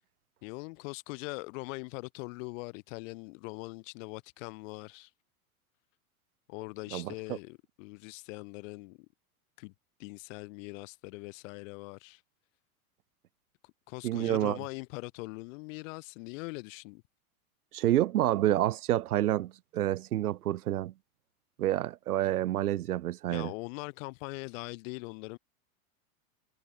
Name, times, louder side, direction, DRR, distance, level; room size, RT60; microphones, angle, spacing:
voice 1, 0.4-5.1 6.5-9.1 9.6-9.7 10.0-12.2 13.6-17.0 23.3-25.4, left 27 dB, 60° left, 3.7 m, -42 dB
voice 2, 6.9-7.4 14.0-14.6 17.7-20.9 21.6-23.5, right 13 dB, 85° right, 1.5 m, -28 dB
hypercardioid pair, 115°, 43 cm